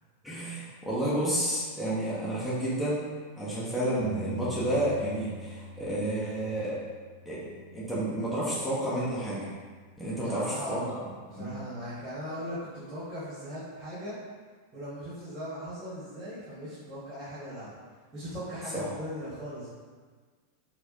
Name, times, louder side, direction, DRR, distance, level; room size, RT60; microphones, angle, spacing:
voice 1, 0.2-3.1 3.4-6.8 7.2-9.5 10.0-10.8 11.3-11.5 18.7-18.9, right 1 dB, 5° left, -9 dB, 0.9 m, -30 dB
Bass guitar, 4.0-8.4 9.1-10.2, left 2 dB, 60° left, 0.7 m, -45 dB
voice 2, 10.2-10.9 11.2-14.1 14.7-17.7 18.1-19.7, equal, 30° right, -10 dB, 1.1 m, -38 dB
4.5 x 2.2 x 2.8 m, 1.5 s
figure-of-eight pair, 90°, 0 cm